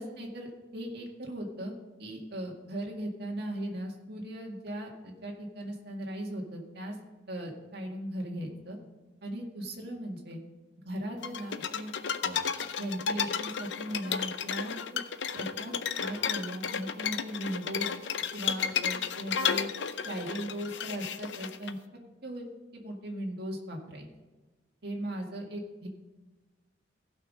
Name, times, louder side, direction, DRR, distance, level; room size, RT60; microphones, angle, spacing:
voice 1, 0.0-1.7 2.0-7.0 7.3-8.8 9.2-10.4 10.8-11.9 12.2-12.4 12.8-14.8 15.3-17.9 18.3-19.7 20.0-21.8 22.2-22.5 22.7-24.1 24.8-25.9, right 1 dB, 60° right, 0 dB, 2.0 m, -38 dB
sound 1, 11.2-21.7, left 7 dB, 75° left, 0.6 m, -33 dB
15.5 x 5.9 x 5.2 m, 1.2 s
head